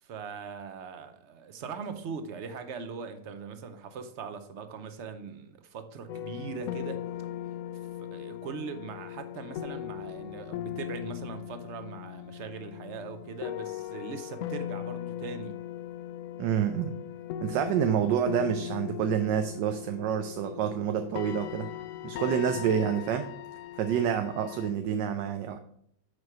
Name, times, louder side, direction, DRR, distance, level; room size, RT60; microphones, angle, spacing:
voice 1, 0.0-7.0 7.7-15.6, right 5 dB, 55° right, 0.8 m, -40 dB
sound 1, 6.1-24.7, left 11 dB, 80° left, 0.7 m, -39 dB
voice 2, 16.4-16.9 17.4-21.7 22.0-23.3 23.8-25.6, right 8 dB, 80° right, 1.2 m, -28 dB
6.5 x 4.6 x 6.0 m
omnidirectional pair, 1.9 m